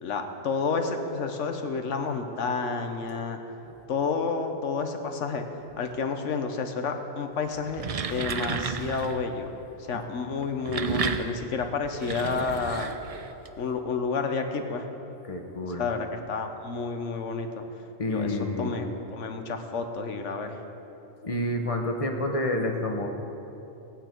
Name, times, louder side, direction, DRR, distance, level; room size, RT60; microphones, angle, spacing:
voice 1, 0.0-3.4 3.9-5.5 5.8-9.5 9.9-12.9 13.6-14.9 15.8-17.5 18.1-20.6, left 4 dB, 80° left, 6 dB, 1.3 m, -30 dB
sound 1, 7.5-9.2 10.4-13.5, right 6 dB, 45° right, 0.4 m, -32 dB
voice 2, 15.3-15.8 18.0-18.7 21.2-23.1, left 1 dB, 30° left, 3 dB, 1.1 m, -28 dB
18.5 x 9.0 x 4.5 m, 3.0 s
omnidirectional pair, 1.2 m